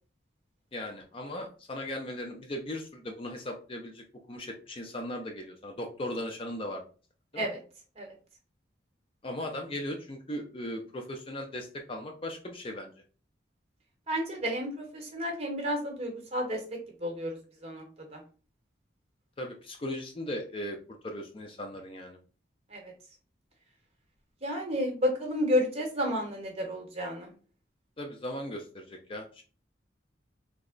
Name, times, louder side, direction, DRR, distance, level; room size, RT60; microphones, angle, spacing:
voice 1, 0.7-6.8 7.3-7.5 9.2-12.9 19.4-20.8 21.0-22.2 28.0-29.4, left 1 dB, 30° left, 3 dB, 0.4 m, -38 dB
voice 2, 14.1-16.6 17.0-17.4 17.6-18.2 22.7-22.9 24.4-27.3, equal, 35° right, 1 dB, 0.9 m, -31 dB
3.3 x 2.0 x 3.7 m, 0.37 s
head